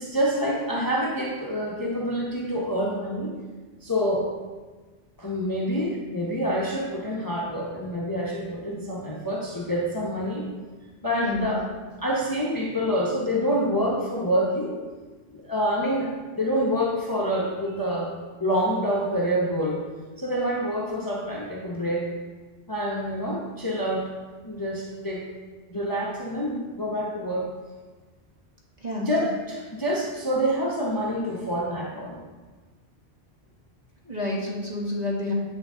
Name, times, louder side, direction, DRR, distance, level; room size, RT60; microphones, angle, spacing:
voice 1, 0.0-3.3 3.8-4.3 5.2-10.4 11.0-11.6 12.0-14.7 15.3-18.1 18.4-19.8 20.2-22.1 22.7-24.1 24.4-25.2 25.7-27.5 29.0-32.2, equal, 20° left, -4 dB, 0.9 m, -27 dB
voice 2, 11.2-11.5 28.8-29.1 34.0-35.3, left 1 dB, 35° right, -4 dB, 1.7 m, -29 dB
8.3 x 5.9 x 3.8 m, 1.3 s
omnidirectional pair, 1.3 m